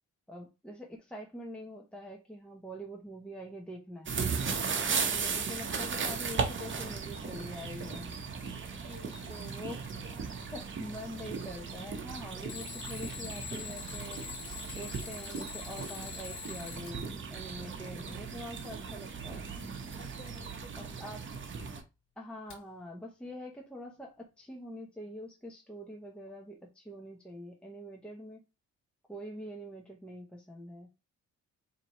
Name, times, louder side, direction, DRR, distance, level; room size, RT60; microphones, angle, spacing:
voice 1, 0.3-4.2 4.9-8.2 9.3-9.7 10.1-14.3 14.7-19.5 20.8-21.2 22.2-28.4 29.1-30.9, equal, 5° left, 0.9 m, -45 dB
sound 1, 4.1-21.8, right 5 dB, 40° right, 1.0 m, -37 dB
Alarm, 7.2-8.0 8.7-10.1 12.4-16.9 20.3-20.4 22.5-22.6, left 7 dB, 85° left, 1.5 m, -45 dB
voice 2, 8.3-9.5 19.9-20.9 21.6-21.7, left 3 dB, 30° left, 1.6 m, -54 dB
4.2 x 2.9 x 3.0 m
cardioid pair, 90°, 30 cm